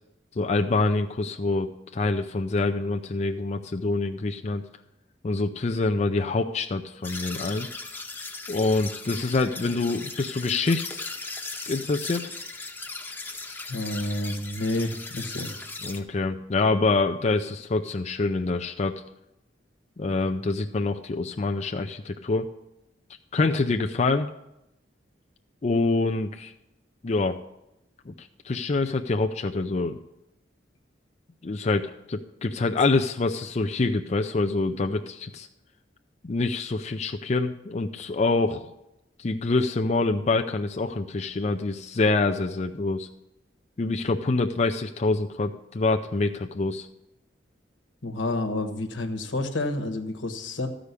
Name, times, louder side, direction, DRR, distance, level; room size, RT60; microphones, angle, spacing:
voice 1, 0.4-4.6 5.2-7.7 8.5-11.1 11.7-12.3 15.8-19.0 20.0-22.5 23.3-24.3 25.6-26.5 27.0-27.4 28.1-30.0 31.4-35.5 36.2-38.7 39.2-43.1 43.8-46.9, left 3 dB, 40° left, 5 dB, 0.5 m, -26 dB
sound 1, 7.0-16.0, left 3 dB, 10° left, 0.9 m, -38 dB
voice 2, 13.7-15.5 48.0-50.7, left 2 dB, 90° left, 6 dB, 1.3 m, -29 dB
14.0 x 5.1 x 8.2 m, 0.88 s
head